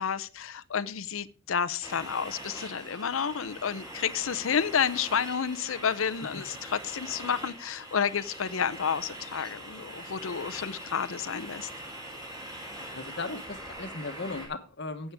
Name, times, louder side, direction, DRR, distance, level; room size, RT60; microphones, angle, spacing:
voice 1, 0.0-11.7, left 7 dB, 75° left, 15 dB, 0.6 m, -30 dB
sound 1, 1.8-14.5, right 1 dB, 20° right, 3.8 m, -43 dB
voice 2, 12.8-15.1, left 3 dB, 55° left, 8 dB, 1.2 m, -37 dB
12.5 x 8.3 x 3.5 m, 0.36 s
head